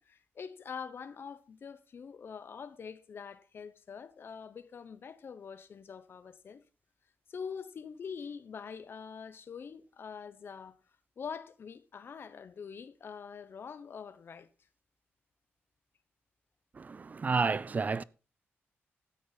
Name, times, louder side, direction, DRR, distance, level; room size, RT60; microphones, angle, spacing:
voice 1, 0.0-6.6 7.3-10.8 11.2-14.5, left 6 dB, 55° left, 1.0 m, -44 dB
voice 2, 16.7-18.0, right 4 dB, 35° right, 0.5 m, -30 dB
13.0 x 9.3 x 4.1 m
wide cardioid pair, 110°, 5 cm